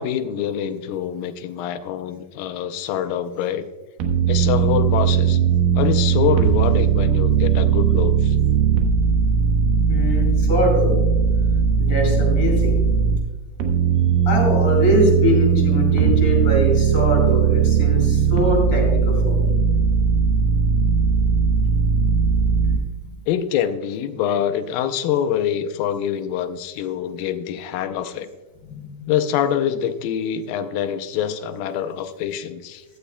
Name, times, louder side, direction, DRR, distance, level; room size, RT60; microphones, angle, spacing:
voice 1, 0.0-3.7 4.3-5.4 5.8-8.4 23.3-28.3 29.1-32.8, left 9 dB, 80° left, 9 dB, 2.3 m, -25 dB
sound 1, 4.0-13.2 13.6-22.8, right 6 dB, 70° right, 2.6 m, -18 dB
voice 2, 9.9-10.9 11.8-12.8 14.3-19.5 23.0-23.1 28.8-28.9, left 1 dB, 35° left, 0 dB, 4.5 m, -22 dB
15.0 x 12.5 x 2.2 m, 1.2 s
omnidirectional pair, 4.3 m